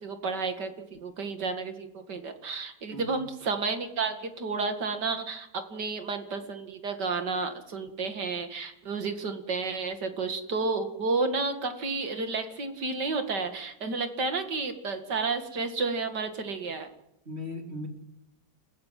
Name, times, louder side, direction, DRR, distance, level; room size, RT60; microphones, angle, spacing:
voice 1, 0.0-16.9, right 4 dB, 80° right, 7 dB, 2.8 m, -31 dB
voice 2, 2.9-3.2 17.3-17.9, left 1 dB, 35° right, 3 dB, 3.7 m, -37 dB
29.5 x 15.5 x 7.7 m, 0.83 s
omnidirectional pair, 1.8 m